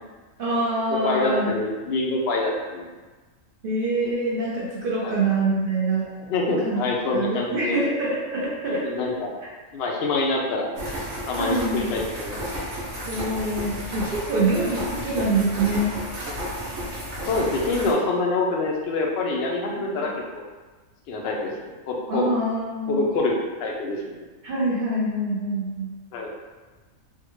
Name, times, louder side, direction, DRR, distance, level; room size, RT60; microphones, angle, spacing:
voice 1, 0.4-1.5 3.6-6.1 6.6-6.8 7.1-9.1 11.4-11.9 13.0-15.9 19.8-19.9 22.1-23.0 24.4-25.9, right 2 dB, 55° right, -6 dB, 0.6 m, -25 dB
voice 2, 0.9-2.9 5.0-5.2 6.3-7.9 8.8-9.3 9.7-10.7 11.3-12.4 17.3-20.4 21.1-22.3 22.9-24.2 26.1-26.3, left 3 dB, 65° left, 0 dB, 0.7 m, -26 dB
sound 1, 10.8-17.9, equal, 80° right, 1.3 m, -32 dB
3.4 x 2.2 x 3.0 m, 1.3 s
omnidirectional pair, 1.4 m